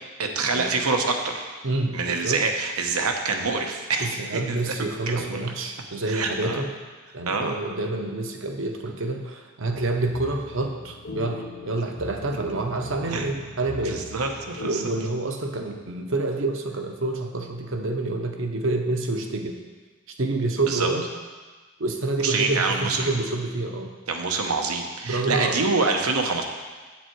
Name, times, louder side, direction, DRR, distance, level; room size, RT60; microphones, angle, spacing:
voice 1, 0.2-1.5 1.9-5.4 6.1-6.6 7.3-7.6 13.1-13.3 13.8-14.8 20.7-20.9 22.2-23.1 24.1-26.4, right 4 dB, 90° right, 3 dB, 1.0 m, -26 dB
voice 2, 1.6-2.4 4.0-6.7 7.1-14.1 14.6-19.6 20.2-21.1 21.8-23.9 25.0-25.6, right 2 dB, 65° right, 4 dB, 0.9 m, -28 dB
sound 1, 9.7-14.8, left 3 dB, 65° left, 0.8 m, -40 dB
8.3 x 7.4 x 4.6 m, 1.4 s
head